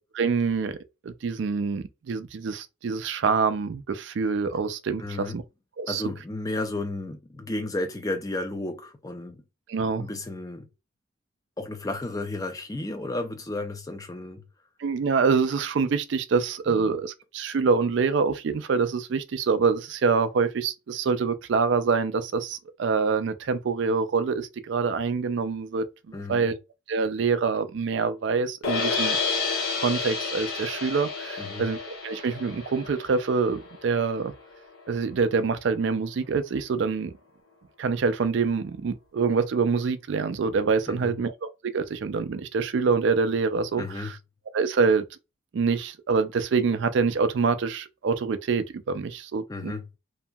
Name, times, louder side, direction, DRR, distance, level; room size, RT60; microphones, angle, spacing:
voice 1, 0.1-0.8 1.0-5.4 5.8-6.0 9.7-10.1 14.8-26.5 26.9-29.2 29.8-34.3 34.9-37.1 37.8-44.2 44.5-45.1 45.5-49.7, right 5 dB, 60° right, 0.3 m, -26 dB
voice 2, 5.0-5.4 5.9-9.4 10.0-10.7 11.6-14.4 16.7-16.9 26.1-26.5 31.4-31.7 40.9-41.1 43.8-44.1 49.5-49.8, left 2 dB, 15° left, 0.4 m, -33 dB
sound 1, 28.6-34.8, left 4 dB, 80° left, 0.9 m, -30 dB
2.8 x 2.6 x 2.2 m
head